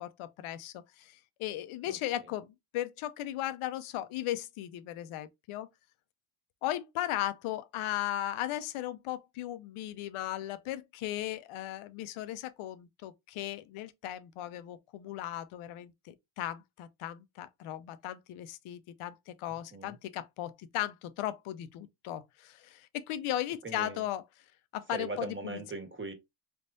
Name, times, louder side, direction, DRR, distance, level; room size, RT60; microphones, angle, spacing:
voice 1, 0.0-5.7 6.6-24.2 24.7-25.5, left 13 dB, 90° left, 0.7 m, -37 dB
voice 2, 1.9-2.3 19.7-19.9 23.6-24.0 24.9-26.1, right 3 dB, 25° right, 1.4 m, -40 dB
4.1 x 3.5 x 2.6 m
cardioid pair, 95°, 49 cm